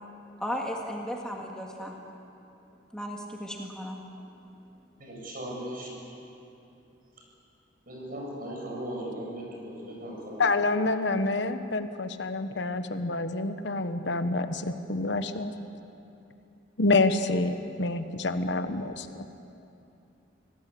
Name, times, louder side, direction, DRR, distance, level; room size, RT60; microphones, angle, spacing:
voice 1, 0.4-1.9 2.9-4.0, equal, 5° left, -1 dB, 1.9 m, -35 dB
voice 2, 5.0-5.9 7.9-10.5, right 1 dB, 50° right, -2 dB, 7.2 m, -37 dB
voice 3, 10.4-15.5 16.8-19.1, left 2 dB, 70° left, 9 dB, 1.1 m, -27 dB
26.0 x 18.0 x 8.6 m, 2.8 s
head